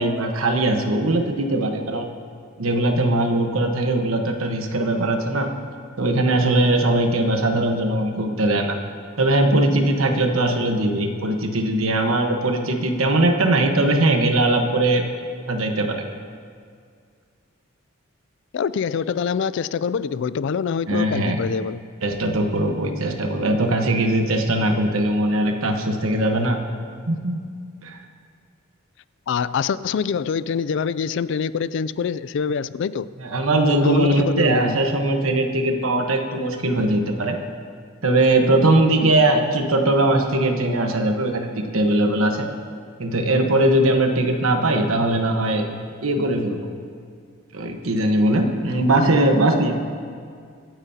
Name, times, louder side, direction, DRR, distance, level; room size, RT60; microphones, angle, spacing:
voice 1, 0.0-2.1 2.6-5.5 6.0-8.8 9.2-15.1 15.5-16.0 20.9-21.4 22.0-26.6 27.1-27.4 27.8-28.0 33.2-37.4 38.0-42.5 43.0-45.7 46.0-46.6 47.5-49.8, right 1 dB, 85° right, 4 dB, 1.2 m, -20 dB
voice 2, 18.5-21.8 29.3-33.1 33.8-34.8, left 6 dB, 60° left, 17 dB, 0.3 m, -25 dB
24.5 x 9.1 x 2.8 m, 2.1 s
head